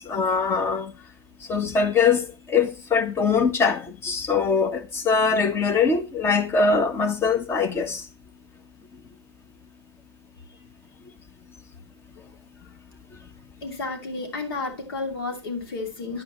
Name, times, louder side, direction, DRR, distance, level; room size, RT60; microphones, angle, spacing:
voice 1, 0.1-0.9 1.5-8.0, left 5 dB, 15° left, 1.2 m, -22 dB
voice 2, 13.6-16.2, left 3 dB, 60° left, 2.7 m, -31 dB
10.5 x 8.5 x 3.0 m
figure-of-eight pair, 115°, 14 cm